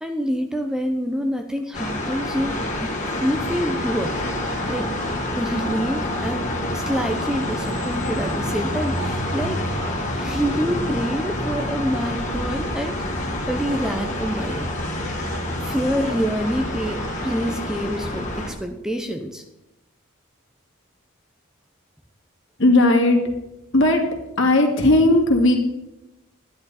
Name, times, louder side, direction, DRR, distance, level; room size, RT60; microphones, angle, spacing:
voice 1, 0.0-2.9 3.2-4.1 4.7-4.9 5.4-9.6 10.2-14.7 15.6-19.4, equal, 5° right, 5 dB, 0.6 m, -26 dB
sound 1, 1.7-18.5, left 1 dB, 35° left, 1.8 m, -27 dB
sound 2, 1.9-17.6, right 2 dB, 75° right, 1.7 m, -41 dB
voice 2, 22.6-23.2 23.7-24.0 24.4-25.6, left 2 dB, 60° left, 2 dB, 2.1 m, -16 dB
12.0 x 10.5 x 4.1 m, 0.93 s
head